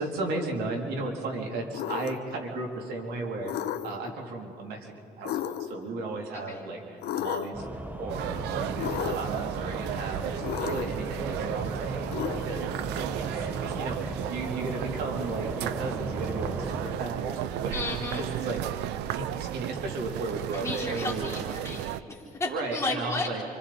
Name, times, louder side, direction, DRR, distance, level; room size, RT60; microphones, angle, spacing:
voice 1, 0.0-3.5 3.8-7.7 8.0-17.8 18.2-21.3 22.4-23.4, right 2 dB, 70° right, 0 dB, 3.1 m, -35 dB
sound 1, 1.7-2.3 3.4-4.1 5.2-5.9 7.0-7.7 8.8-9.4 10.4-11.0 12.1-12.8, left 11 dB, 75° left, 1.0 m, -33 dB
sound 2, 7.5-16.9, right 2 dB, 10° right, 1.2 m, -37 dB
sound 3, 8.1-22.0, right 12 dB, 90° right, 0.6 m, -34 dB
voice 2, 17.7-18.2 20.5-23.3, left 3 dB, 15° left, -3 dB, 4.2 m, -33 dB
28.5 x 25.5 x 4.2 m, 2.8 s
cardioid pair, 110°, 17 cm